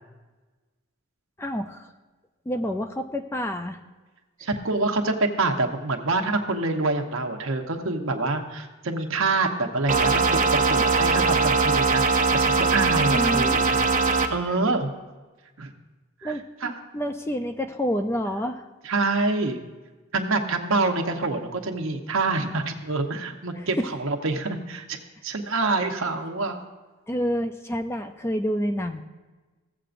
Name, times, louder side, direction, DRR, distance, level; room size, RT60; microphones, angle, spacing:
voice 1, 1.4-1.9 2.5-3.8 4.4-4.5 13.1-13.8 14.5-14.6 16.2-18.7 23.6-23.7 27.1-29.0, equal, 10° left, 7 dB, 0.3 m, -29 dB
voice 2, 4.4-13.8 14.3-14.9 15.6-15.7 16.2-16.3 16.6-16.8 18.8-19.6 20.1-25.0 25.2-26.6, right 3 dB, 65° right, 4 dB, 0.9 m, -26 dB
sound 1, 9.9-14.3, right 4 dB, 35° right, 0.6 m, -21 dB
16.0 x 7.8 x 2.5 m, 1.2 s
head